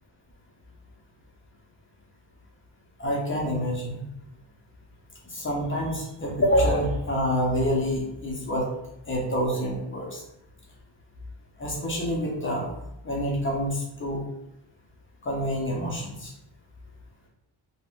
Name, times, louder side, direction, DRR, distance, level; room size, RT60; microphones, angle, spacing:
voice 1, 3.0-4.0 5.3-8.7 9.1-10.2 11.6-12.7 13.0-14.2 15.2-16.3, equal, 30° left, -2 dB, 0.4 m, -27 dB
2.4 x 2.0 x 3.4 m, 0.86 s
wide cardioid pair, 165°, 46 cm